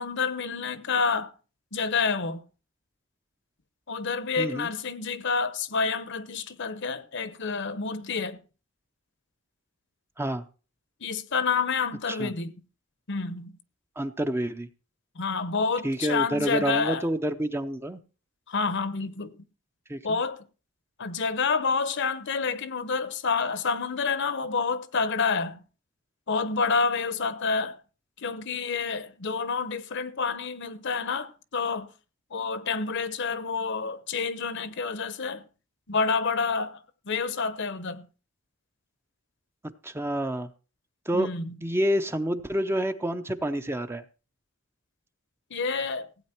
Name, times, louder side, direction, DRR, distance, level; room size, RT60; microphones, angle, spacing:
voice 1, 0.0-1.3 1.7-2.4 3.9-8.4 11.0-12.5 13.1-13.5 15.2-17.0 18.5-19.3 20.0-20.4 21.0-25.6 26.3-27.8 28.2-31.9 32.3-35.4 35.9-36.8 37.1-38.1 41.1-41.5 45.5-46.1, left 5 dB, 60° left, 0.9 m, -28 dB
voice 2, 4.4-4.7 10.2-10.4 12.1-12.3 14.0-14.7 15.8-18.0 19.9-20.2 39.8-40.5 41.1-41.3 41.6-44.0, right 1 dB, 10° right, 0.6 m, -28 dB
16.0 x 8.5 x 4.4 m
head